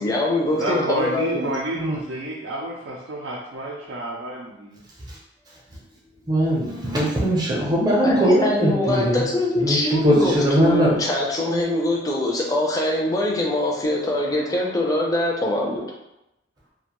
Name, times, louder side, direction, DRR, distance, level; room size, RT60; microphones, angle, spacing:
voice 1, 0.0-1.5 8.0-15.8, left 1 dB, 20° left, -2 dB, 0.4 m, -23 dB
voice 2, 0.6-4.8 14.7-14.8, right 1 dB, 70° right, -5 dB, 0.4 m, -29 dB
voice 3, 6.3-9.3 9.5-11.0, equal, 20° right, -4 dB, 0.6 m, -20 dB
2.5 x 2.2 x 2.9 m, 0.90 s
head